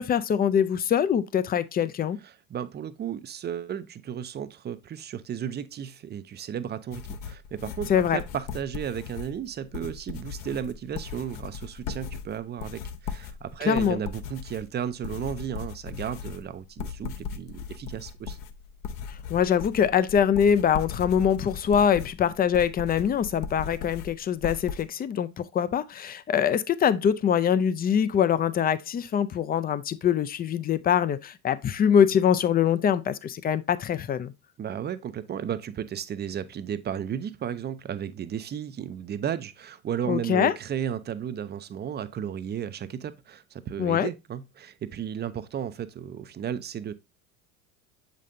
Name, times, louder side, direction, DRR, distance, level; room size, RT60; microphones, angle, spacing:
voice 1, 0.0-2.2 7.9-8.2 13.7-14.0 19.3-34.3 40.1-40.5 43.8-44.1, left 8 dB, 20° left, 0.5 m, -23 dB
voice 2, 2.2-18.4 34.6-46.9, right 9 dB, 25° right, 0.5 m, -34 dB
sound 1, 6.9-24.8, left 7 dB, 45° left, 0.8 m, -38 dB
7.3 x 5.2 x 2.6 m
hypercardioid pair, 75°, 44 cm